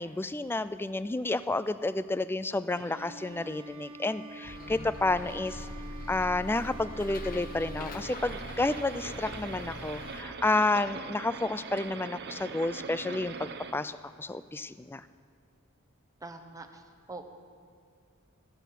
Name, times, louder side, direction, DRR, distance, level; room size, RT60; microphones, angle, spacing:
voice 1, 0.0-5.7 6.1-15.0, left 2 dB, 10° left, 14 dB, 0.3 m, -30 dB
Bowed string instrument, 2.7-8.6, right 2 dB, 80° right, 1.4 m, -47 dB
Bus, 4.4-10.2, left 2 dB, 45° left, 0.9 m, -42 dB
sound 1, 8.0-13.7, right 5 dB, 50° right, 0.8 m, -41 dB
voice 2, 16.2-16.8 17.1-17.2, right 3 dB, 15° right, 4 dB, 1.0 m, -43 dB
18.0 x 9.2 x 5.9 m, 2.3 s
head